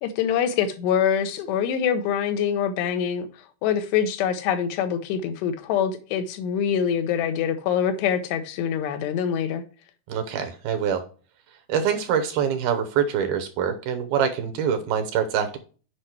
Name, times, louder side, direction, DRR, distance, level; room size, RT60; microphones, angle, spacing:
voice 1, 0.0-3.3 3.6-9.6, left 8 dB, 85° left, 3.0 m, -24 dB
voice 2, 10.1-11.0 11.7-15.6, right 7 dB, 75° right, 2.5 m, -25 dB
8.0 x 5.4 x 4.4 m
omnidirectional pair, 4.8 m